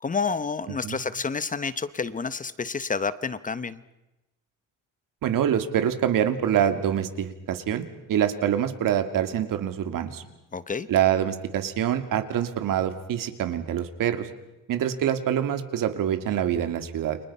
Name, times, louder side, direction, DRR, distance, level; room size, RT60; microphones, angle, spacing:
voice 1, 0.0-3.8 10.5-10.9, left 5 dB, 25° left, 15 dB, 0.9 m, -29 dB
voice 2, 5.2-10.2 10.9-14.3 14.7-17.2, right 10 dB, 85° right, 8 dB, 2.4 m, -25 dB
29.5 x 25.0 x 5.6 m, 0.98 s
cardioid pair, 155°, 32 cm